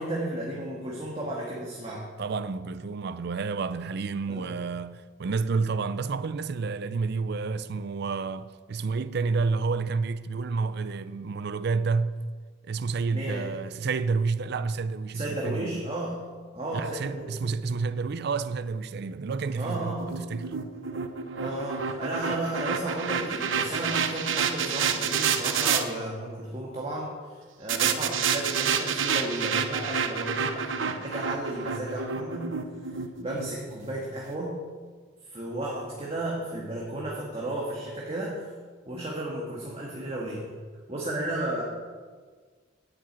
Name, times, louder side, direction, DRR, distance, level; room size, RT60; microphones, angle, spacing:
voice 1, 0.0-2.0 4.3-4.5 13.1-13.6 15.1-16.2 16.5-17.3 19.6-20.3 21.4-32.5 32.9-34.5 35.3-38.5 38.9-40.4 40.9-41.6, right 1 dB, 30° right, 1.9 m, -33 dB
voice 2, 2.2-12.2 12.6-15.8 16.7-20.5, right 4 dB, 55° right, 0.4 m, -30 dB
sound 1, 19.6-25.8 27.7-33.9, right 6 dB, 85° right, 0.9 m, -29 dB
9.5 x 7.6 x 8.7 m
head